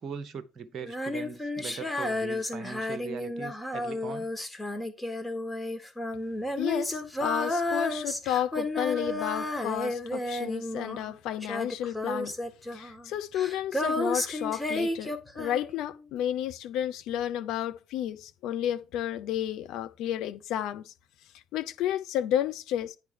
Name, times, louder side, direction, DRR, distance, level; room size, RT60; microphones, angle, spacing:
voice 1, 0.0-4.3, right 6 dB, 45° right, 0.8 m, -40 dB
Female singing, 0.8-11.2 11.4-15.9, left 1 dB, 10° left, 1.6 m, -32 dB
voice 2, 6.6-12.3 12.7-20.9 21.5-23.0, left 11 dB, 60° left, 0.7 m, -32 dB
9.6 x 4.6 x 4.6 m
figure-of-eight pair, 45°, 0 cm